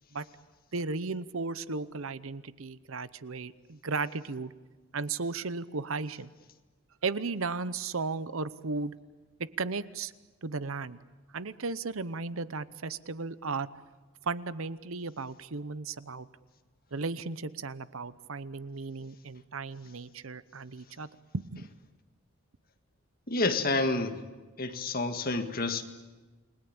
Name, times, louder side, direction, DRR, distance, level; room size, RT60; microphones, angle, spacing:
voice 1, 0.7-4.5 4.9-6.3 7.0-9.0 9.4-10.1 10.4-11.0 11.3-13.7 14.2-16.3 16.9-21.1 21.5-21.7, right 4 dB, 70° right, 15 dB, 0.9 m, -35 dB
voice 2, 23.3-24.2 24.6-25.8, left 3 dB, 45° left, 7 dB, 1.8 m, -29 dB
29.5 x 21.0 x 8.8 m, 1.3 s
head